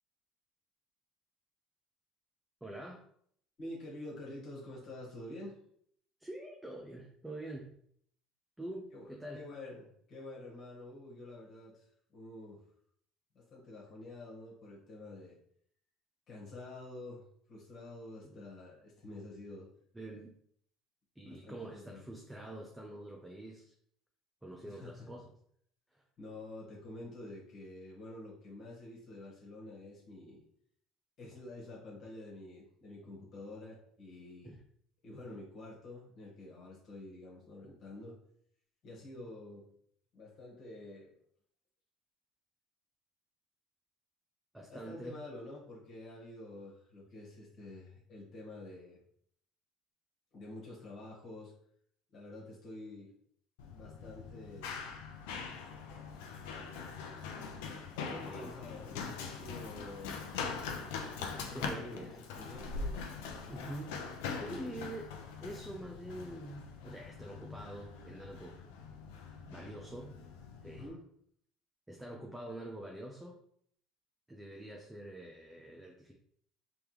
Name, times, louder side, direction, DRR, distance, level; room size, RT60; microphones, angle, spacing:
voice 1, 2.6-3.0 6.2-7.8 8.6-9.4 18.2-18.4 19.9-20.4 21.2-23.7 24.4-25.3 25.9-26.0 34.4-34.6 44.5-45.2 58.2-58.5 61.4-62.2 63.5-64.0 64.3-65.1 65.4-68.6 69.5-70.2 70.6-70.8 71.9-73.4 74.3-76.1, right 1 dB, 5° right, 1 dB, 0.6 m, -46 dB
voice 2, 3.6-5.6 8.9-12.7 13.3-15.4 16.3-17.2 17.5-19.7 21.2-22.1 24.6-24.9 26.2-30.4 31.2-34.5 35.0-38.2 38.8-39.7 40.1-41.1 44.7-49.0 50.3-51.5 52.1-53.1 53.7-54.9 57.9-60.2 61.5-63.1 64.4-65.0 70.8-71.0, left 2 dB, 50° left, -4 dB, 1.5 m, -48 dB
Run, 53.6-70.9, left 5 dB, 85° left, 0.6 m, -43 dB
3.5 x 3.3 x 3.1 m, 0.65 s
supercardioid pair, 105°, 0 cm